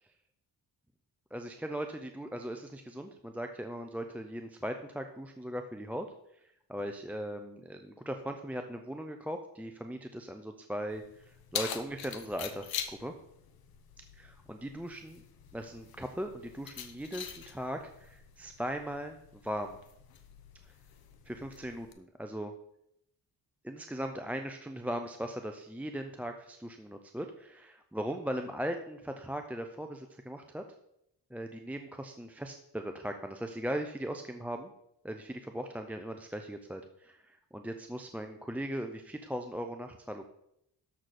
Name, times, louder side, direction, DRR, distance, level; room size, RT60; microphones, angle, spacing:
voice 1, 1.3-13.1 14.2-15.2 15.5-19.8 21.2-22.5 23.6-30.7 31.3-34.7 35.0-40.2, equal, 5° right, 5 dB, 0.5 m, -39 dB
Keys jangling, 10.9-21.9, left 8 dB, 65° left, 1.1 m, -44 dB
13.0 x 6.3 x 4.2 m, 0.76 s
wide cardioid pair, 150°, 38 cm